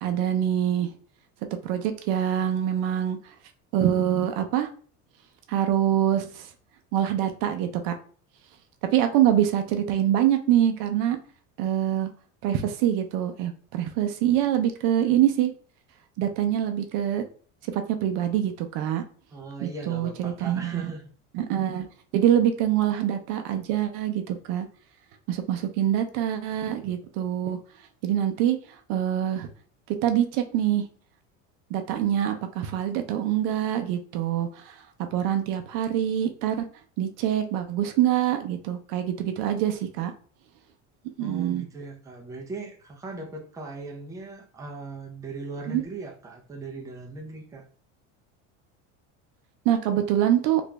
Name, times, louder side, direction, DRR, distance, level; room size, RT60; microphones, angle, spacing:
voice 1, 0.0-0.9 1.6-3.2 3.7-4.7 5.5-6.5 6.9-7.9 8.9-11.2 11.6-12.1 12.4-15.5 16.2-17.2 17.7-19.0 19.6-20.9 21.3-21.9 22.1-24.7 25.3-27.6 28.0-28.6 28.9-29.5 30.0-30.8 31.7-34.6 35.1-36.6 37.0-40.1 41.2-41.6 45.7-45.8 49.7-50.6, right 11 dB, 65° right, 6 dB, 0.6 m, -25 dB
voice 2, 19.3-21.0 41.2-47.7, right 3 dB, 10° right, 0 dB, 0.5 m, -39 dB
2.9 x 2.5 x 3.2 m, 0.42 s
cardioid pair, 135°, 35 cm